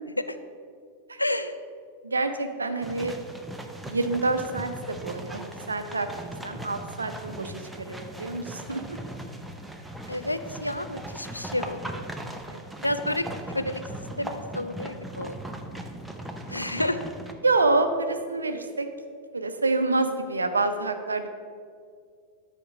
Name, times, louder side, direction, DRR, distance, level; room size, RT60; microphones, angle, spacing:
voice 1, 1.2-1.5 10.1-12.0 12.8-13.8 14.2-15.4 15.7-15.8 16.5-17.0, left 1 dB, 85° left, 10 dB, 0.4 m, -30 dB
voice 2, 2.0-3.2 3.8-6.1 6.4-9.0 12.5-12.7 17.4-18.9 19.3-21.3, right 3 dB, 75° right, 8 dB, 0.6 m, -27 dB
sound 1, 2.8-17.3, right 1 dB, 5° right, 0.6 m, -39 dB
9.8 x 4.4 x 4.9 m, 2.1 s
figure-of-eight pair, 90°, 0 cm